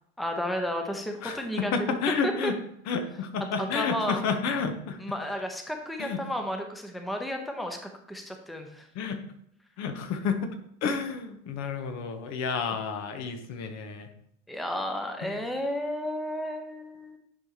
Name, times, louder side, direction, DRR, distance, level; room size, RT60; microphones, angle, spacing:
voice 1, 0.2-2.0 2.2-2.5 3.6-4.2 5.0-7.8 8.1-8.9 14.5-17.2, equal, ahead, 4 dB, 0.9 m, -32 dB
voice 2, 1.2-2.5 2.9-5.0 6.0-6.2 8.9-9.2 9.8-10.5 10.8-14.1 15.2-15.4, left 5 dB, 50° left, 6 dB, 1.1 m, -30 dB
10.0 x 4.8 x 2.9 m, 0.70 s
hypercardioid pair, 75°, 35 cm